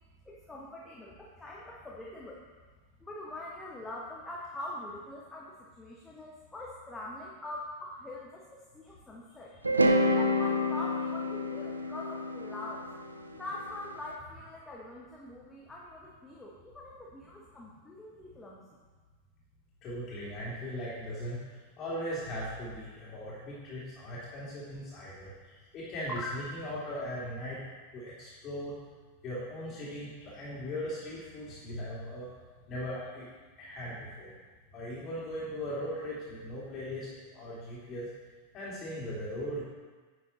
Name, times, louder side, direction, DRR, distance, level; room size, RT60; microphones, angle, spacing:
voice 1, 0.2-2.4 3.0-9.6 10.1-12.9 13.3-18.8, left 2 dB, 10° left, -4 dB, 1.3 m, -43 dB
sound 1, 9.6-13.8, left 1 dB, 80° right, 0.6 m, -28 dB
voice 2, 19.8-27.6 27.9-28.8 29.2-32.3 32.7-33.3 33.6-34.3 34.7-37.1 37.3-38.1 38.5-39.6, equal, 30° left, -7 dB, 2.9 m, -38 dB
10.0 x 6.8 x 4.2 m, 1.4 s
figure-of-eight pair, 90°, 0 cm